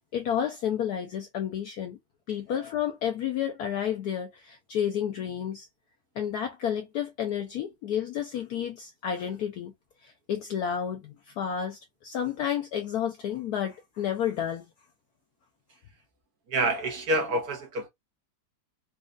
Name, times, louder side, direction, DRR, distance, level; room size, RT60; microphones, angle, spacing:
voice 1, 0.1-2.0 2.3-5.7 6.2-9.7 10.0-14.7, left 9 dB, 75° left, 0.9 m, -31 dB
voice 2, 16.5-17.9, right 2 dB, 55° right, 1.3 m, -27 dB
4.2 x 2.3 x 2.4 m
omnidirectional pair, 2.1 m